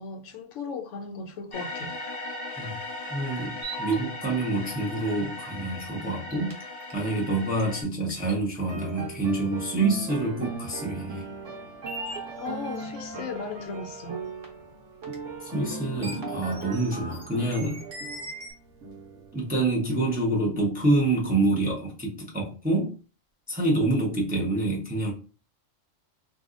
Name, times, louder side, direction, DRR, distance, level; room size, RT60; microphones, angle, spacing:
voice 1, 0.0-1.9 12.4-14.2, left 4 dB, 70° left, 1.0 m, -36 dB
sound 1, 1.5-7.8, left 2 dB, 40° left, 0.9 m, -38 dB
voice 2, 3.1-6.6 6.9-11.2 15.4-17.8 19.3-23.0 23.5-25.1, right 2 dB, 10° right, 0.6 m, -27 dB
sound 2, 3.6-3.9 6.3-6.9 7.6-7.7 8.1-8.3 9.0-9.1 11.9-12.8 14.4-14.5 15.0-15.1 15.9-18.5, right 2 dB, 40° right, 1.0 m, -38 dB
sound 3, 8.6-19.9, right 3 dB, 70° right, 1.1 m, -38 dB
2.7 x 2.3 x 3.6 m
omnidirectional pair, 1.4 m